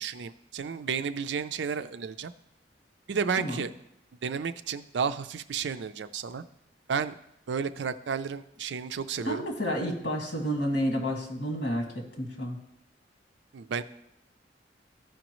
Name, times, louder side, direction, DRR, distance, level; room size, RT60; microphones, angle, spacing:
voice 1, 0.0-2.3 3.1-3.7 4.2-6.4 6.9-7.2 7.5-9.4 13.5-13.8, right 6 dB, 75° right, 11 dB, 0.4 m, -32 dB
voice 2, 9.2-12.6, equal, 65° left, 1 dB, 2.0 m, -30 dB
14.0 x 5.1 x 3.0 m, 0.83 s
head